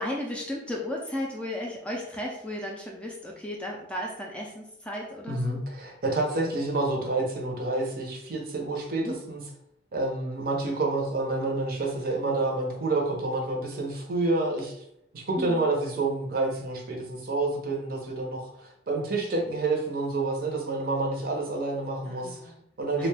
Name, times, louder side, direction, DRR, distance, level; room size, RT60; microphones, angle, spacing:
voice 1, 0.0-5.6 9.0-9.1 15.4-15.7 22.1-22.6 23.0-23.1, left 1 dB, 5° left, -1 dB, 0.3 m, -35 dB
voice 2, 5.3-9.4 9.9-14.7 15.1-22.4 22.8-23.1, right 2 dB, 55° right, 0 dB, 0.6 m, -28 dB
2.4 x 2.1 x 3.2 m, 0.76 s
head